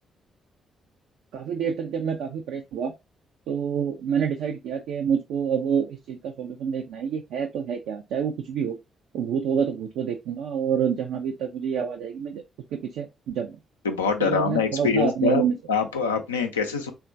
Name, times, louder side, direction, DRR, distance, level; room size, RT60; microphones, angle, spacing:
voice 1, 1.3-2.9 3.5-8.8 9.1-12.4 12.7-13.6 14.2-15.6, right 7 dB, 65° right, 0.4 m, -27 dB
voice 2, 13.8-16.9, left 5 dB, 85° left, 0.4 m, -24 dB
3.6 x 2.3 x 2.5 m
figure-of-eight pair, 40°, 0 cm